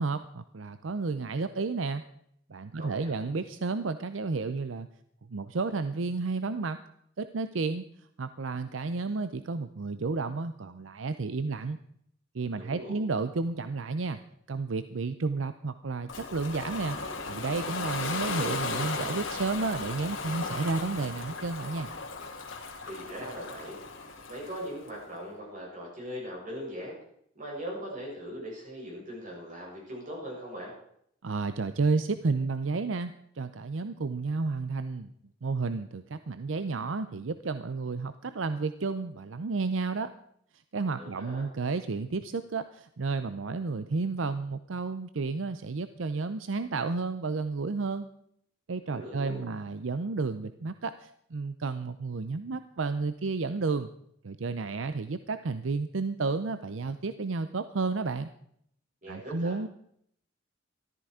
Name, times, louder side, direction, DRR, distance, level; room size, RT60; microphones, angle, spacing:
voice 1, 0.0-2.0 2.5-4.9 5.3-6.8 7.2-7.8 8.2-11.8 12.3-14.2 14.5-17.0 17.3-21.9 31.2-35.1 35.4-40.1 40.7-48.1 48.7-53.9 54.2-58.3 59.1-59.7, right 4 dB, 80° right, 12 dB, 0.6 m, -31 dB
voice 2, 2.8-3.2 12.6-13.0 22.8-23.8 24.3-27.0 27.3-30.7 40.9-41.4 48.9-49.4 59.0-59.5, equal, 45° right, -3 dB, 7.5 m, -40 dB
Ocean, 16.1-24.9, left 4 dB, 80° left, 2.4 m, -36 dB
13.5 x 13.0 x 4.9 m, 0.70 s
head